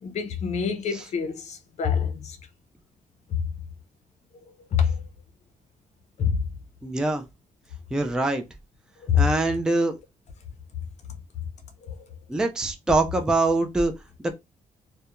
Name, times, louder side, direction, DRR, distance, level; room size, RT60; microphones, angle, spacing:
voice 1, 0.0-2.4 3.3-3.5 4.7-5.0 6.2-6.4 9.0-9.3 11.8-11.9, left 7 dB, 55° left, 0.5 m, -25 dB
voice 2, 6.8-7.2 7.9-8.4 9.1-10.0 12.3-13.9 14.2-14.3, right 2 dB, 5° right, 0.3 m, -24 dB
2.3 x 2.1 x 2.9 m
cardioid pair, 145°, 14 cm